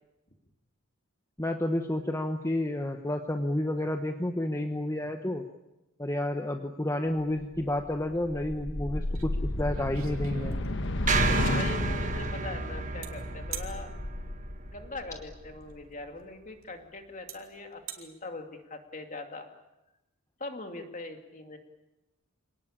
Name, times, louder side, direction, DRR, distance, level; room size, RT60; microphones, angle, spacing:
voice 1, 1.4-5.4 6.0-10.6, left 1 dB, 15° left, 5 dB, 1.1 m, -30 dB
sound 1, 7.4-15.8, left 1 dB, 60° left, 1.4 m, -33 dB
sound 2, 9.2-9.3 9.6-11.0 13.0-13.1 13.5-13.7 15.6-15.7 16.6-16.7 17.3-17.4 17.7-18.0, right 9 dB, 75° right, 3.3 m, -41 dB
sound 3, 11.1-15.4, right 3 dB, 35° right, 1.5 m, -32 dB
voice 2, 11.2-13.9 14.6-19.5 20.4-21.6, left 2 dB, 35° left, 5 dB, 2.6 m, -41 dB
27.0 x 19.0 x 8.8 m, 0.97 s
head